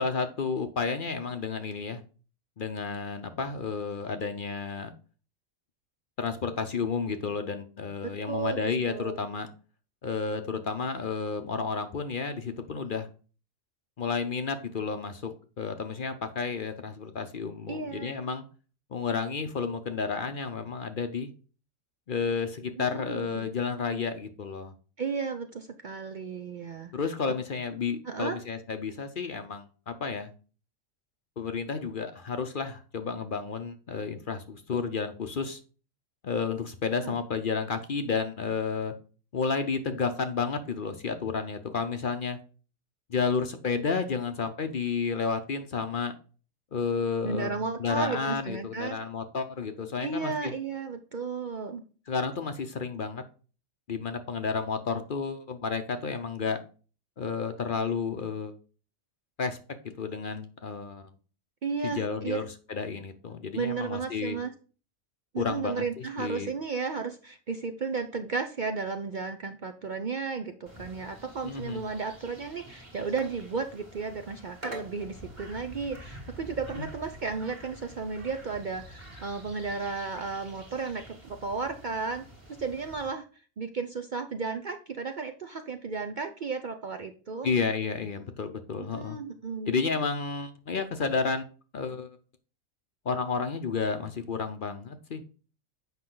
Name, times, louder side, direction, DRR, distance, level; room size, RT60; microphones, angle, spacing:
voice 1, 0.0-2.0 2.6-4.9 6.2-9.5 10.0-13.1 14.0-18.4 18.9-21.3 22.1-24.7 26.9-30.3 31.4-35.6 36.2-38.9 39.3-42.4 43.1-46.1 46.7-47.5 47.8-50.5 52.1-53.2 53.9-56.6 57.2-58.5 59.4-59.6 60.0-61.1 61.8-64.4 65.4-66.5 71.4-71.8 87.4-89.2 89.7-91.5 91.7-92.2 93.0-95.2, left 5 dB, 50° left, 8 dB, 0.8 m, -31 dB
voice 2, 8.0-9.3 17.7-18.2 22.8-23.5 25.0-26.9 27.3-27.4 28.0-28.4 37.0-37.2 47.2-49.0 50.0-51.8 61.6-62.4 63.5-64.5 65.3-82.2 82.6-83.3 83.6-87.5 88.8-89.8, right 4 dB, 50° right, 7 dB, 0.6 m, -34 dB
sound 1, 70.7-83.1, right 1 dB, 25° right, 1.8 m, -47 dB
8.1 x 5.5 x 3.8 m, 0.38 s
omnidirectional pair, 1.3 m